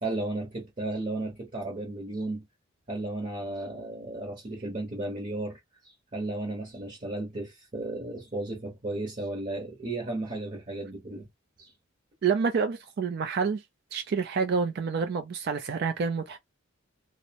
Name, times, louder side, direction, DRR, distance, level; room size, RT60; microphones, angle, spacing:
voice 1, 0.0-2.4 2.9-11.3 11.6-11.7, right 2 dB, 35° right, 0.8 m, -34 dB
voice 2, 12.2-13.6 13.9-16.4, right 5 dB, 50° right, 0.4 m, -28 dB
2.6 x 2.0 x 2.7 m
head